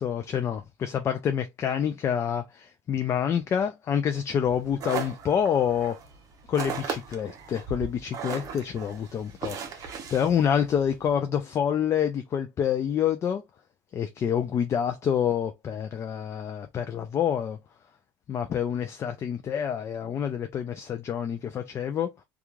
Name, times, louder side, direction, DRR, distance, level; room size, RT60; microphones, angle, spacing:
voice 1, 0.0-6.0 6.5-13.4 13.9-17.6 18.3-22.1, left 8 dB, 35° left, 0.4 m, -27 dB
sound 1, 4.4-11.1, right 6 dB, 45° right, 0.8 m, -37 dB
3.0 x 2.3 x 2.4 m
supercardioid pair, 120°, 8 cm